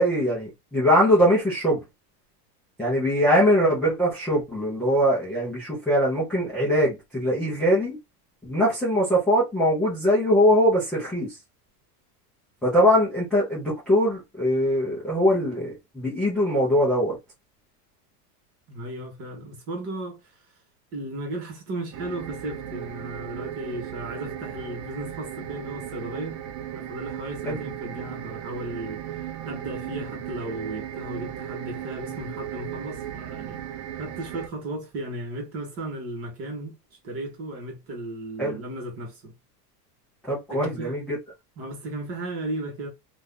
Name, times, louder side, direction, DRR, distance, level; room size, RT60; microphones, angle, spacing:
voice 1, 0.0-1.8 2.8-8.0 8.4-11.4 12.6-17.2 27.5-27.6 38.4-38.6 40.3-41.2, equal, ahead, 0.4 m, -22 dB
voice 2, 18.7-20.2 20.9-26.4 26.7-33.6 34.0-36.8 37.0-39.3 40.5-40.9 41.6-42.9, right 1 dB, 30° right, 1.1 m, -35 dB
sound 1, 21.9-34.5, right 10 dB, 60° right, 0.7 m, -36 dB
2.6 x 2.5 x 3.4 m
supercardioid pair, 160°, 48 cm